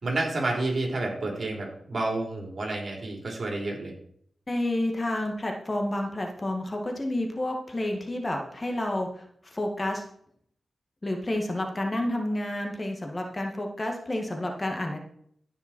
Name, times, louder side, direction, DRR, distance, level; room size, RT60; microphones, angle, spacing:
voice 1, 0.0-3.9, right 2 dB, 55° right, 0 dB, 4.0 m, -30 dB
voice 2, 4.5-9.1 9.4-10.0 11.0-15.0, left 1 dB, 30° left, 3 dB, 2.1 m, -30 dB
14.5 x 5.9 x 4.6 m, 0.65 s
cardioid pair, 55°, 0 cm